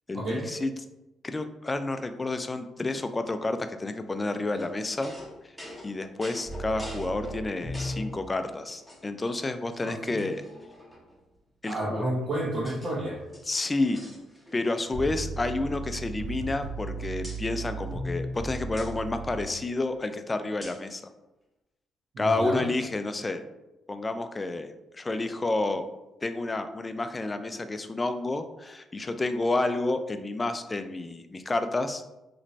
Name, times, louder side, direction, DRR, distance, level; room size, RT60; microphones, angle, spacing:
voice 1, 0.1-0.7 1.2-5.1 5.8-10.4 11.6-12.0 13.5-14.0 14.5-21.0 22.2-23.4 23.9-24.7 24.9-25.8 26.2-32.0, left 2 dB, 25° left, 8 dB, 0.3 m, -30 dB
sound 1, 4.6-8.2 8.7-9.3 9.7-9.8 10.2-11.2 12.0-12.9 13.2-14.8 15.0-15.3 15.6-16.9 17.2-17.4 18.8-18.9 20.6-20.9, equal, ahead, 0.7 m, -46 dB
sound 2, 6.5-8.1 14.9-19.4, right 2 dB, 40° right, 0.7 m, -36 dB
voice 2, 9.8-10.2 11.7-13.2 15.0-15.1 22.1-22.6, right 1 dB, 70° right, -11 dB, 1.3 m, -31 dB
3.2 x 3.0 x 2.6 m, 0.98 s
cardioid pair, 90°, 0 cm